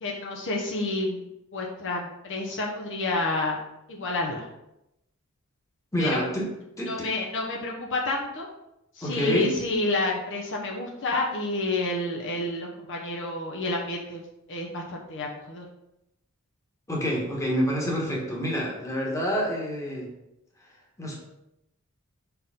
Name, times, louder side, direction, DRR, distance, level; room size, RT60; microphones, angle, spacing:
voice 1, 0.0-1.2 1.5-3.6 3.9-4.4 6.0-6.2 6.9-8.5 9.0-14.2 14.5-15.7, left 2 dB, 55° left, -1 dB, 0.9 m, -29 dB
voice 2, 5.9-6.5 6.8-7.1 9.0-9.5 16.9-20.1 21.0-21.2, equal, 15° left, -3 dB, 1.4 m, -27 dB
5.6 x 4.6 x 3.7 m, 0.86 s
head